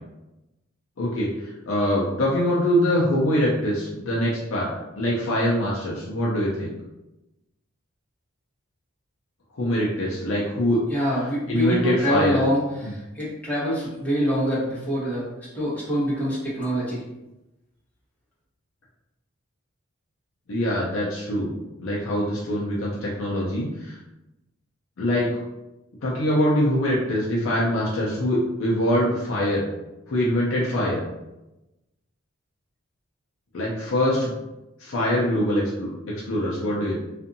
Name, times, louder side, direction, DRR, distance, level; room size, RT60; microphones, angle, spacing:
voice 1, 1.0-4.7 5.0-6.7 9.6-10.8 11.5-12.4 12.8-12.9 20.5-21.5 21.8-24.0 25.0-25.3 26.0-29.6 30.1-31.0 33.5-34.3 34.8-37.0, equal, 70° left, -5 dB, 0.5 m, -24 dB
voice 2, 10.9-15.3 15.5-17.0, equal, 5° left, -9 dB, 1.0 m, -25 dB
2.6 x 2.4 x 2.6 m, 0.98 s
head